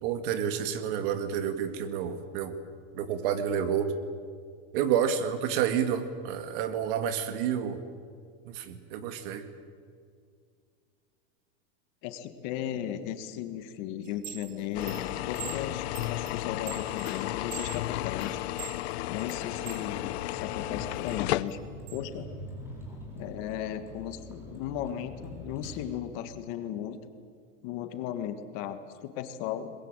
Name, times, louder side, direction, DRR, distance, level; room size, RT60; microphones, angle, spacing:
voice 1, 0.0-2.6 2.9-3.9 4.7-7.8 8.5-9.4, right 8 dB, 50° right, 10 dB, 2.0 m, -29 dB
voice 2, 12.0-18.4 19.0-21.6 21.9-22.3 23.1-27.0 27.6-29.7, left 10 dB, 40° left, 10 dB, 1.6 m, -36 dB
Chime, 14.0-19.9 20.3-22.0, right 13 dB, 90° right, 2.8 m, -45 dB
sound 1, 14.7-21.4, left 16 dB, 60° left, 0.8 m, -33 dB
Vehicle, 20.3-25.8, equal, 5° right, 4.5 m, -44 dB
22.5 x 21.5 x 8.9 m, 2.2 s
supercardioid pair, 175°, 36 cm